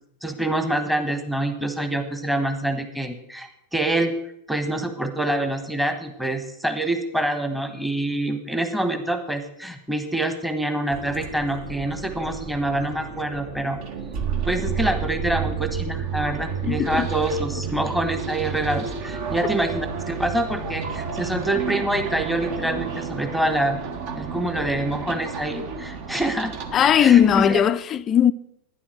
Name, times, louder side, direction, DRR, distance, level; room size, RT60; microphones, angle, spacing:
voice 1, 0.2-4.1 4.5-13.8 14.4-23.8 24.1-26.5 27.0-27.6, right 1 dB, 5° right, 1.3 m, -26 dB
sound 1, 10.9-27.6, right 6 dB, 45° right, 1.3 m, -31 dB
voice 2, 16.7-17.1 26.7-28.3, left 9 dB, 25° left, 0.4 m, -18 dB
11.5 x 10.0 x 6.2 m
figure-of-eight pair, 90°, 0 cm